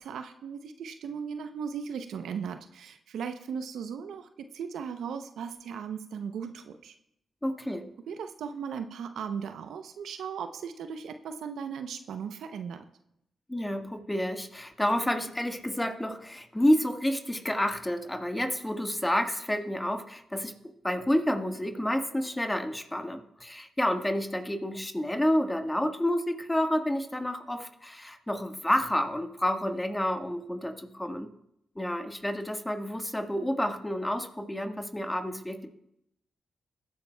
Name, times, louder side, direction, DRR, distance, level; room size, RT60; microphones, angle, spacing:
voice 1, 0.0-6.9 8.1-12.9, right 6 dB, 75° right, 8 dB, 0.6 m, -37 dB
voice 2, 7.4-7.9 13.5-20.5 20.8-31.3 31.7-35.7, left 1 dB, 15° left, 5 dB, 1.4 m, -29 dB
20.5 x 10.5 x 2.3 m, 0.80 s
supercardioid pair, 45°, 0 cm